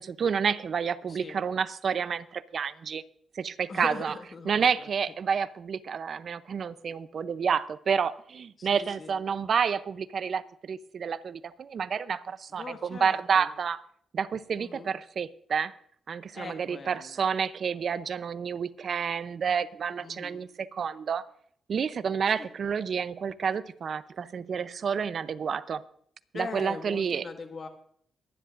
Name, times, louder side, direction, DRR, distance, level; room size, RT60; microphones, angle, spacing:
voice 1, 0.0-3.0 3.3-4.1 4.5-13.8 14.1-15.7 16.1-21.2 21.7-25.8 26.3-27.2, right 6 dB, 65° right, 14 dB, 0.6 m, -29 dB
voice 2, 3.7-4.9 8.6-9.1 12.5-13.5 14.6-14.9 16.3-17.3 20.0-20.4 22.4-22.5 26.3-27.7, left 4 dB, 50° left, 6 dB, 1.7 m, -41 dB
23.0 x 10.5 x 2.5 m, 0.64 s
cardioid pair, 65°, 0 cm